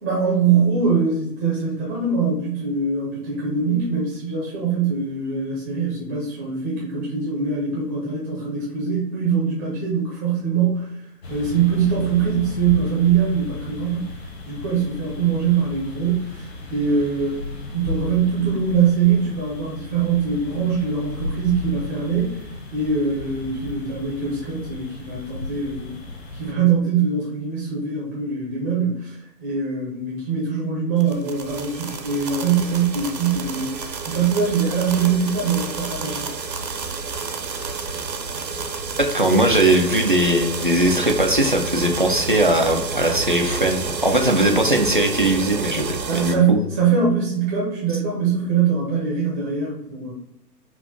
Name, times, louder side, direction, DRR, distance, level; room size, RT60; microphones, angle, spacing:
voice 1, 0.0-10.9 11.3-14.1 14.4-16.4 16.7-17.4 17.7-22.3 22.7-26.0 26.3-33.8 34.0-36.3 46.1-50.1, right 6 dB, 10° right, -5 dB, 0.7 m, -22 dB
sound 1, 11.2-26.5, left 3 dB, 40° left, 0.8 m, -35 dB
sound 2, 31.0-46.4, right 4 dB, 75° right, 0.9 m, -30 dB
voice 2, 39.0-46.7, right 1 dB, 35° right, 2 dB, 0.4 m, -19 dB
5.8 x 2.4 x 3.6 m, 0.81 s
figure-of-eight pair, 130°, 50 cm